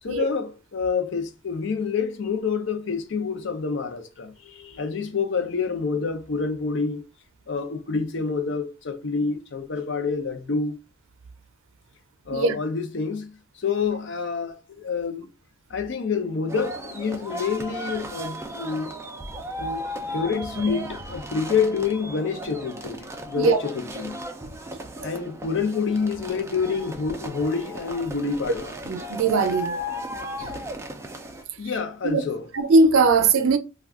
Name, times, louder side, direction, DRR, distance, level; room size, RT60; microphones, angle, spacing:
voice 1, 0.0-7.0 7.5-10.8 12.3-15.3 15.7-18.9 19.6-24.2 25.0-28.8 31.6-32.5, left 5 dB, 60° left, 0.5 m, -27 dB
sound 1, 16.5-31.4, equal, 15° right, 0.4 m, -35 dB
voice 2, 28.9-29.8 30.4-30.5 32.0-32.2 32.5-33.6, right 3 dB, 85° right, 0.5 m, -19 dB
2.4 x 2.3 x 3.5 m
head